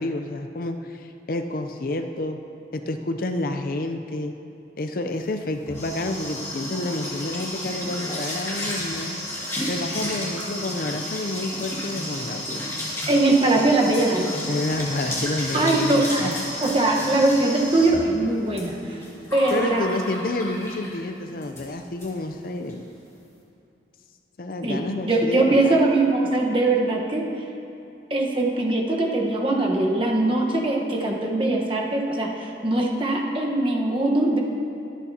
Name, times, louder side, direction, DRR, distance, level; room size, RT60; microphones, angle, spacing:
voice 1, 0.0-2.4 2.7-4.3 4.8-9.2 9.7-12.6 14.5-16.4 19.5-22.9 24.4-25.8, left 2 dB, 50° left, 7 dB, 0.5 m, -29 dB
sound 1, 5.3-21.0 21.4-21.7 22.0-22.1 22.4-22.7, left 1 dB, 15° left, 2.1 m, -32 dB
voice 2, 13.1-14.3 15.5-19.0 19.3-19.8 24.6-24.8 25.0-27.3 28.1-34.4, right 2 dB, 30° right, -1 dB, 1.1 m, -21 dB
23.0 x 8.4 x 2.8 m, 2.7 s
head